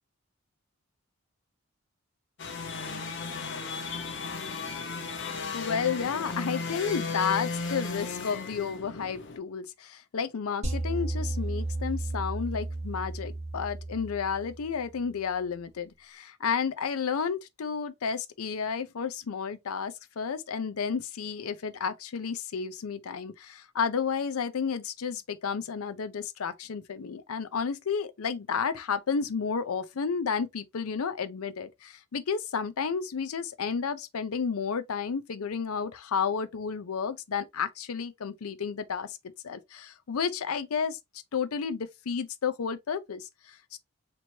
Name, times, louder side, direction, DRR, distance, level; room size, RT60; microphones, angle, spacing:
sound 1, 2.4-9.4, left 4 dB, 55° left, 0.9 m, -35 dB
voice 1, 5.5-39.2 39.4-41.0 41.3-43.8, left 6 dB, 90° left, 0.5 m, -32 dB
sound 2, 10.6-15.0, right 2 dB, 30° right, 2.0 m, -33 dB
4.4 x 3.0 x 2.7 m
head